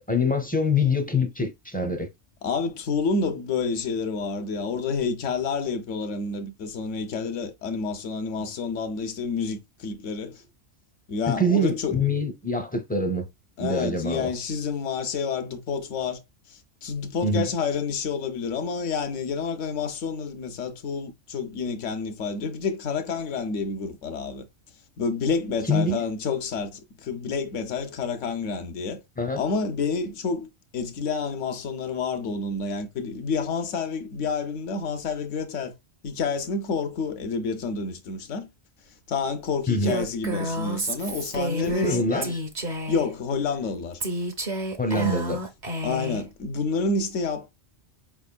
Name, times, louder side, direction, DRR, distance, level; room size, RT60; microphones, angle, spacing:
voice 1, 0.0-2.1 11.4-13.3 13.6-14.3 17.2-17.5 25.7-26.0 29.2-29.4 39.7-39.9 41.6-42.2 44.8-45.4, left 1 dB, 10° left, 0.4 m, -25 dB
voice 2, 2.4-10.4 11.1-12.1 13.6-16.2 16.5-24.5 25.0-29.0 29.4-30.5 30.7-35.7 36.0-38.5 39.1-42.4 42.9-44.0 45.0-45.1 45.8-47.5, left 5 dB, 90° left, 1.1 m, -29 dB
Female speech woman speaking, 39.8-43.1 44.0-46.2, equal, 45° right, 0.8 m, -30 dB
5.0 x 3.5 x 2.2 m
omnidirectional pair, 1.2 m